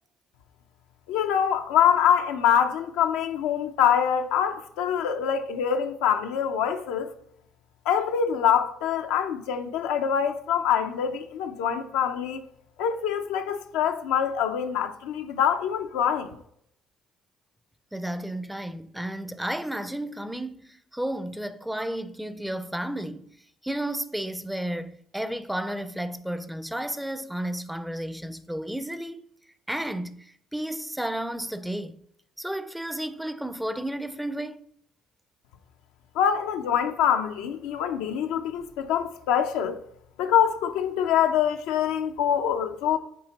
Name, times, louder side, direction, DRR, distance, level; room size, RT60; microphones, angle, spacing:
voice 1, 1.1-7.1 7.9-12.4 12.8-16.4 36.1-39.8 40.2-43.0, left 8 dB, 85° left, 0.6 m, -25 dB
voice 2, 17.9-23.3 23.6-29.2 29.7-32.0 32.4-34.6, right 1 dB, 5° right, 0.5 m, -32 dB
8.5 x 2.9 x 4.0 m
supercardioid pair, 75°, 0 cm